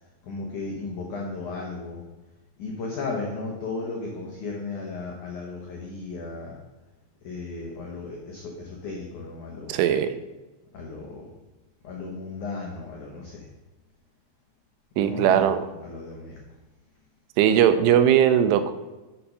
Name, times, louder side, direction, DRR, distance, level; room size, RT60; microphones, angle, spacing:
voice 1, 0.2-2.0 2.6-6.6 7.2-9.8 10.7-11.3 11.8-13.5 15.0-16.4, left 3 dB, 85° left, -1 dB, 1.7 m, -35 dB
voice 2, 9.7-10.1 15.0-15.6 17.4-18.7, right 9 dB, 85° right, 10 dB, 3.0 m, -19 dB
7.2 x 7.1 x 5.4 m, 1.1 s
omnidirectional pair, 5.5 m